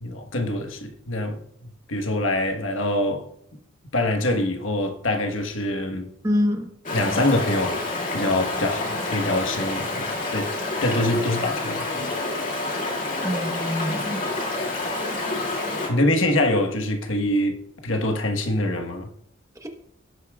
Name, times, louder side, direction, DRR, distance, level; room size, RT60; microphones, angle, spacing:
voice 1, 0.0-3.3 3.9-6.1 6.9-10.5 10.8-12.1 15.6-19.1, left 1 dB, 85° left, 1.3 m, -25 dB
voice 2, 6.2-6.7 13.2-14.2 19.6-19.7, left 1 dB, 15° right, 1.1 m, -25 dB
Stream, 6.8-15.9, left 2 dB, 40° left, 2.4 m, -28 dB
17.0 x 8.4 x 2.4 m
head